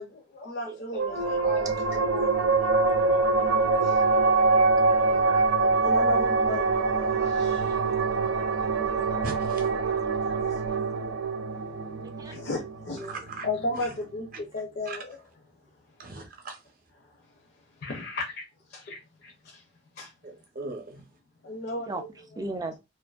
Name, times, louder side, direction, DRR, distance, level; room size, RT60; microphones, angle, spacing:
voice 1, 0.0-2.3 3.8-4.0 5.8-7.8 10.3-10.6 12.2-15.2 17.8-18.4 18.7-19.6 20.0-20.1 21.4-22.4, left 2 dB, 50° left, 0.5 m, -35 dB
sound 1, 0.9-13.8, right 3 dB, 90° right, 0.5 m, -24 dB
voice 2, 4.9-5.5 9.7-10.4 10.6-10.7 12.2-12.3 13.0-13.2 21.9-22.0 22.4-22.8, right 2 dB, 20° right, 0.3 m, -38 dB
voice 3, 9.2-9.6 13.1-13.4 14.9-15.0 16.0-16.6 20.2-21.0, right 3 dB, 45° right, 0.7 m, -38 dB
2.5 x 2.4 x 2.3 m
head